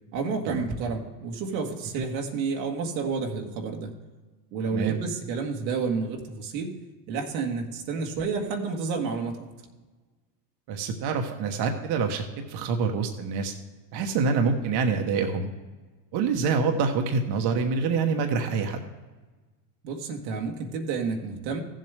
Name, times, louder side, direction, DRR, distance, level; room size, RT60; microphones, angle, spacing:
voice 1, 0.1-3.9 4.5-6.7 7.1-9.5 19.8-21.6, right 4 dB, 85° right, 2 dB, 1.8 m, -30 dB
voice 2, 4.6-5.0 10.7-13.5 13.9-15.5 16.1-18.8, right 5 dB, 50° right, 4 dB, 1.2 m, -26 dB
15.0 x 7.5 x 3.4 m, 1.3 s
supercardioid pair, 105°, 50 cm